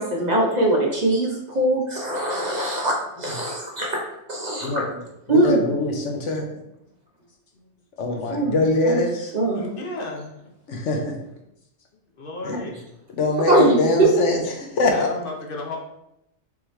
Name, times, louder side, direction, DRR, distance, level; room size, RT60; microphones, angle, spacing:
voice 1, 0.0-4.0 4.3-4.8 5.3-5.6 8.3-8.5 8.8-9.0 9.3-9.6 13.5-14.1, right 1 dB, 40° right, -2 dB, 0.8 m, -21 dB
voice 2, 4.6-5.0 5.3-6.5 8.0-9.3 10.7-11.1 12.4-12.6 13.2-15.1, left 2 dB, 80° left, 2 dB, 1.1 m, -23 dB
voice 3, 9.5-10.3 12.2-12.8 14.9-15.8, left 2 dB, 50° left, 0 dB, 1.0 m, -33 dB
5.4 x 3.1 x 3.2 m, 0.84 s
omnidirectional pair, 1.2 m